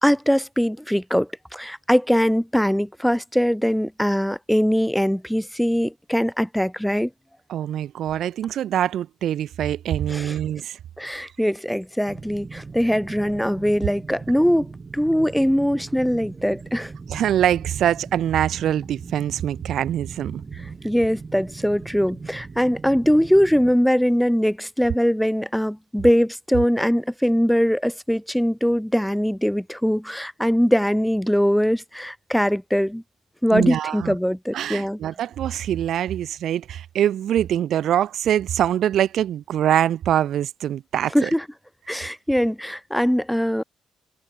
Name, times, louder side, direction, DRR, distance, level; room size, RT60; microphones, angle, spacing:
voice 1, 0.0-7.1 10.1-10.4 11.0-16.9 20.8-33.0 33.4-35.0 41.1-41.4 41.9-43.6, equal, ahead, 0.8 m, -21 dB
voice 2, 7.5-10.8 17.1-20.4 33.5-34.1 34.5-41.3, right 11 dB, 65° right, 0.4 m, -24 dB
sound 1, 12.1-23.8, right 4 dB, 30° right, 1.6 m, -39 dB
cardioid pair, 115°, 0 cm